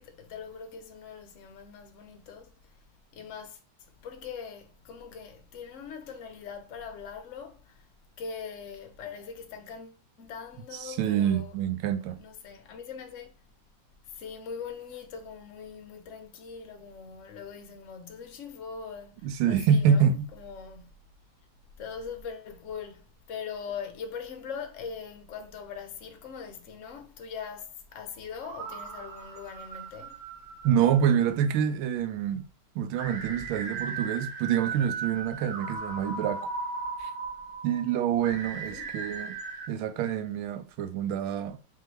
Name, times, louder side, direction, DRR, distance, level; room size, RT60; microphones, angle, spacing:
voice 1, 0.0-2.5 3.1-3.6 4.0-7.9 8.2-11.5 12.0-13.3 14.1-20.9 21.8-30.2 38.5-38.9, left 6 dB, 60° left, 0.8 m, -41 dB
voice 2, 10.8-12.2 19.2-20.3 30.6-32.5 32.7-36.5 37.0-37.1 37.6-39.4 39.7-41.6, right 8 dB, 85° right, 1.4 m, -26 dB
sound 1, 28.4-31.6 32.9-39.7, right 4 dB, 65° right, 1.0 m, -38 dB
3.7 x 3.3 x 3.1 m
omnidirectional pair, 2.2 m